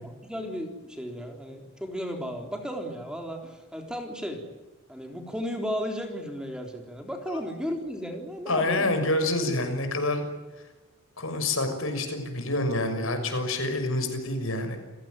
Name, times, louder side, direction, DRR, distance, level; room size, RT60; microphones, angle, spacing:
voice 1, 0.0-4.4 4.9-8.9, equal, 5° right, 3 dB, 3.6 m, -34 dB
voice 2, 8.5-10.2 11.2-14.8, left 2 dB, 70° left, 7 dB, 6.4 m, -27 dB
29.0 x 17.0 x 9.4 m, 1.2 s
head